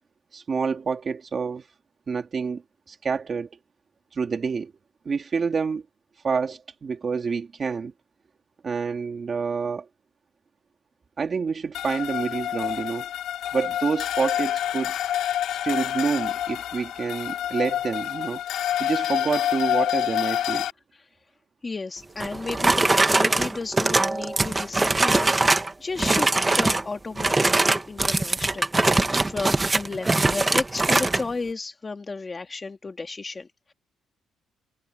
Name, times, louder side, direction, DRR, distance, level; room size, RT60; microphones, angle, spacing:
voice 1, 0.3-1.6 2.1-2.6 2.9-3.5 4.1-4.7 5.0-5.8 6.2-7.9 8.6-9.9 11.2-13.1 13.5-14.9 15.6-18.4 18.8-20.7, right 5 dB, 30° right, 2.8 m, -28 dB
sound 1, 11.7-20.7, left 11 dB, 75° left, 2.7 m, -27 dB
voice 2, 21.6-28.7 29.2-33.7, left 3 dB, 20° left, 1.8 m, -33 dB
sound 2, 22.2-25.7 26.0-26.8 27.2-31.2, right 2 dB, 15° right, 1.2 m, -22 dB
cardioid pair, 170°, 0 cm